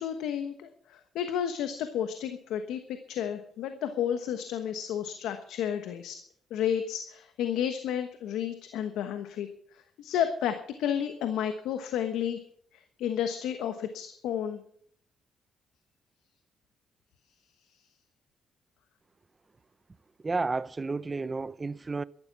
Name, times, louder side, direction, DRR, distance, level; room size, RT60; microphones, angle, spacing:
voice 1, 0.0-2.8 3.1-6.2 6.5-9.5 9.7-12.4 12.7-14.6, left 9 dB, 85° left, 1.2 m, -32 dB
voice 2, 20.2-22.0, right 3 dB, 25° right, 0.6 m, -31 dB
13.5 x 12.0 x 6.0 m
cardioid pair, 90°, 0 cm